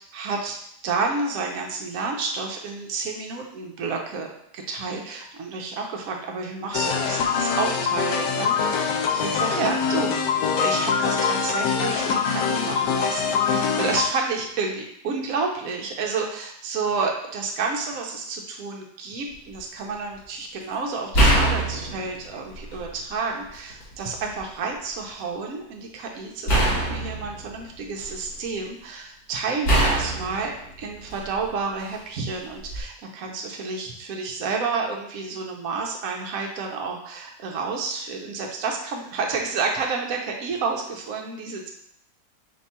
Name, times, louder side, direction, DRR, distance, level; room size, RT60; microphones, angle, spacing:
voice 1, 0.1-0.6 0.8-4.3 4.5-30.5 30.8-41.7, right 4 dB, 65° right, 1 dB, 1.1 m, -30 dB
sound 1, 6.7-14.1, left 6 dB, 90° left, 1.2 m, -24 dB
sound 2, 19.3-19.6 21.1-23.0 23.4-24.4 26.5-28.4 29.6-31.5 32.6-32.8, right 1 dB, 60° left, 1.9 m, -24 dB
5.2 x 2.4 x 4.2 m, 0.73 s
omnidirectional pair, 1.8 m